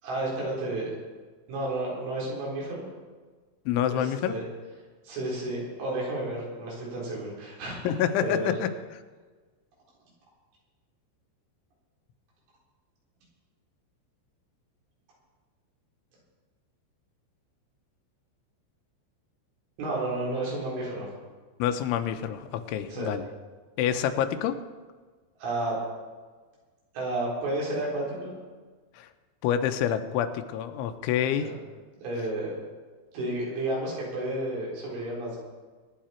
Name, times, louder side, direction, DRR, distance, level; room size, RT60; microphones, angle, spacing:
voice 1, 0.0-0.9 1.5-2.9 3.9-4.4 5.0-7.9 8.2-8.5 19.8-21.1 22.9-23.1 25.4-25.8 26.9-28.3 31.4-31.6 32.0-32.5 33.1-35.4, right 2 dB, 90° right, -4 dB, 6.7 m, -31 dB
voice 2, 3.7-4.4 7.8-8.7 21.6-23.2 23.8-24.6 28.9-29.1 29.4-31.5, left 9 dB, 85° left, 8 dB, 3.2 m, -27 dB
22.5 x 10.0 x 4.4 m, 1.4 s
omnidirectional pair, 5.3 m